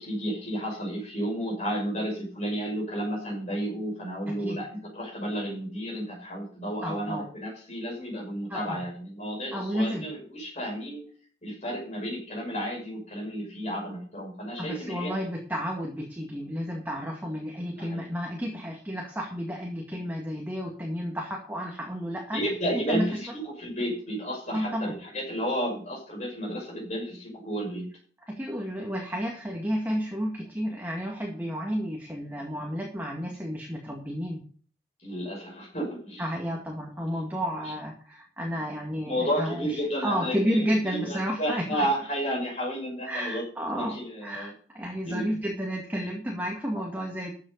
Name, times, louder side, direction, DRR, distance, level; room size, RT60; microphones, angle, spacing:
voice 1, 0.0-11.1 11.4-15.2 17.7-18.1 22.3-27.9 35.0-36.2 37.6-37.7 39.0-43.4 43.7-44.5 45.1-45.3, equal, 40° left, -2 dB, 5.9 m, -32 dB
voice 2, 4.3-4.6 6.8-7.3 8.5-8.8 9.5-10.1 14.6-22.4 22.7-23.1 24.5-24.9 28.3-34.4 36.2-41.9 43.0-47.3, equal, 10° right, 0 dB, 2.1 m, -31 dB
13.5 x 7.6 x 5.4 m, 0.43 s
head